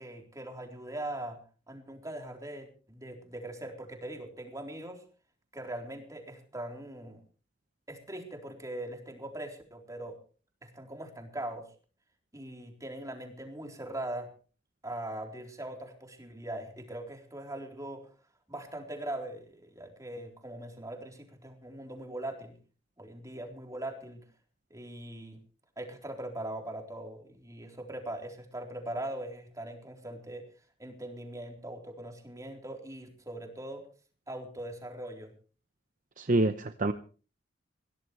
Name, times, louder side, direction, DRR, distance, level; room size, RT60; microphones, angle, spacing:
voice 1, 0.0-1.4 1.7-5.0 5.5-7.2 7.9-10.2 10.6-11.7 12.3-14.3 14.8-18.0 18.5-22.6 23.0-24.2 24.7-25.4 25.8-30.4 30.8-33.8 34.3-35.3, right 1 dB, 20° right, 2 dB, 3.9 m, -41 dB
voice 2, 36.2-36.9, right 2 dB, 45° right, 9 dB, 0.8 m, -26 dB
22.0 x 17.5 x 3.2 m, 0.39 s
head